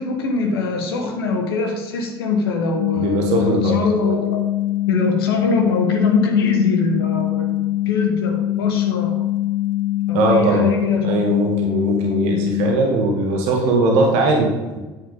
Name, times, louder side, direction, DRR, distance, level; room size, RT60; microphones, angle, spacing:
voice 1, 0.0-4.4 4.9-9.2 10.1-11.2, left 3 dB, 70° left, 3 dB, 1.4 m, -23 dB
sound 1, 2.8-12.8, left 15 dB, 55° left, 0.5 m, -22 dB
voice 2, 2.9-3.8 10.1-10.7 11.0-14.8, right 2 dB, 60° right, 0 dB, 1.9 m, -19 dB
9.6 x 7.4 x 3.6 m, 1.2 s
figure-of-eight pair, 60°, 13 cm